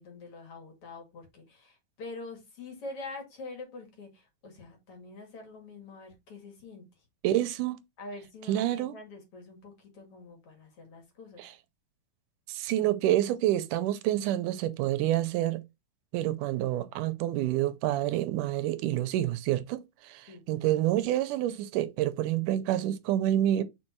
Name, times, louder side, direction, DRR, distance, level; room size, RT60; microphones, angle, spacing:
voice 1, 0.0-7.0 8.0-11.4 20.3-20.7, left 3 dB, 45° left, 2.8 m, -45 dB
voice 2, 7.2-7.8 8.5-8.9 11.4-11.5 12.5-15.6 16.1-23.6, right 13 dB, 85° right, 2.1 m, -28 dB
5.4 x 4.4 x 4.4 m
omnidirectional pair, 3.8 m